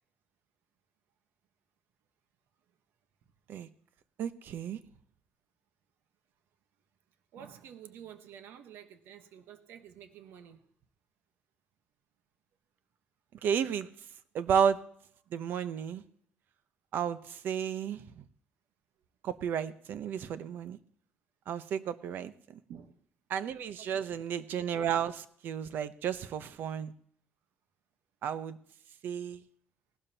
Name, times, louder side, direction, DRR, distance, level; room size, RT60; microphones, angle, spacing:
voice 1, 4.2-4.8 13.4-13.9 14.3-14.8 15.3-16.0 16.9-18.0 19.2-20.8 21.5-22.6 23.3-26.9 28.2-28.6 29.0-29.4, right 8 dB, 65° right, 13 dB, 0.8 m, -32 dB
voice 2, 7.3-10.6 22.7-23.0 23.8-24.2, right 9 dB, 80° right, 9 dB, 1.1 m, -50 dB
18.5 x 12.0 x 2.9 m, 0.64 s
cardioid pair, 150°, 4 cm